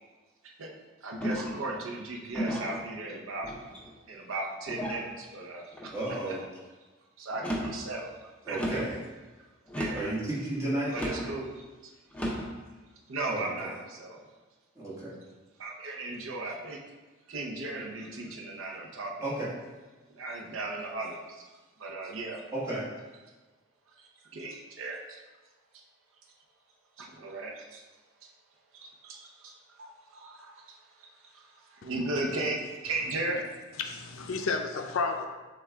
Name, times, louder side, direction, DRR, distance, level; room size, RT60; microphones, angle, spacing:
voice 1, 1.0-3.5 4.1-5.6 6.3-6.4 7.2-8.1 8.5-8.6 9.7-10.1 10.9-11.9 13.1-14.2 15.6-16.8 17.3-19.1 20.0-21.4 21.8-22.4 24.0-25.2 27.0-27.8 28.7-33.4, right 2 dB, 65° right, 0 dB, 0.6 m, -36 dB
sound 1, 1.2-1.7 2.3-2.8 3.4-4.0 4.7-5.1 5.7-6.2 7.3-7.8 8.5-8.9 9.7-10.1 10.9-11.3 12.1-12.5, equal, 5° left, 0.6 m, -34 dB
voice 2, 5.9-6.4 8.4-9.0 9.9-10.9 13.3-13.7 14.7-15.1 19.2-19.4 22.5-22.8, right 1 dB, 15° right, -9 dB, 1.4 m, -33 dB
voice 3, 31.8-32.6 33.8-35.3, left 4 dB, 70° left, 4 dB, 0.4 m, -33 dB
6.4 x 2.3 x 3.5 m, 1.2 s
head